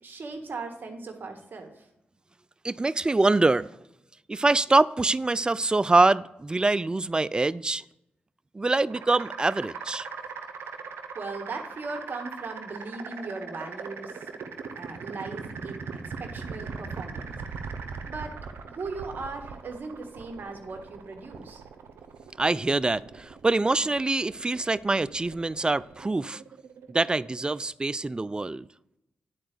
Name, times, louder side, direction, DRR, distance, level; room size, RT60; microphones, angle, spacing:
voice 1, 0.0-1.7 11.1-14.3 14.7-17.4 18.1-18.4 18.6-21.6, right 3 dB, 55° right, 1.6 m, -38 dB
voice 2, 2.6-3.8 4.3-7.8 8.5-10.1 16.0-16.2 22.4-26.4 26.9-28.7, right 2 dB, 20° right, 0.3 m, -24 dB
sound 1, 8.9-27.6, right 5 dB, 85° right, 0.8 m, -40 dB
10.5 x 4.4 x 6.7 m
cardioid pair, 55°, 4 cm